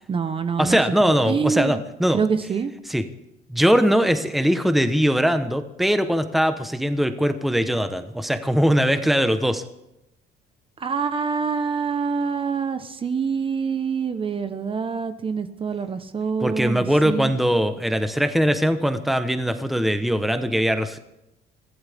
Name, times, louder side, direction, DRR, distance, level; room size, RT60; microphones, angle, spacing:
voice 1, 0.1-0.8 1.0-1.8 2.1-2.7 10.8-17.3, right 5 dB, 30° right, 10 dB, 1.0 m, -26 dB
voice 2, 0.6-2.2 2.9-3.0 3.5-9.6 16.4-21.0, equal, ahead, 9 dB, 1.0 m, -21 dB
23.0 x 15.5 x 3.6 m, 0.88 s
cardioid pair, 110°, 17 cm